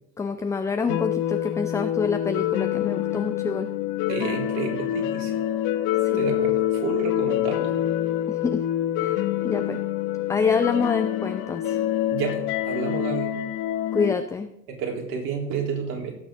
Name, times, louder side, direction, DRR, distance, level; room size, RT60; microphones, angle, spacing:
voice 1, 0.2-3.7 6.0-6.3 8.3-8.6 9.0-9.8 10.3-11.8 13.9-14.5, left 5 dB, 10° left, 7 dB, 0.3 m, -27 dB
sound 1, 0.9-14.1, left 12 dB, 50° left, 1.2 m, -26 dB
voice 2, 4.1-5.4 6.1-7.7 12.1-13.3 14.7-16.1, right 5 dB, 60° right, -1 dB, 3.8 m, -30 dB
17.5 x 7.0 x 3.8 m, 0.79 s
hypercardioid pair, 80°, 46 cm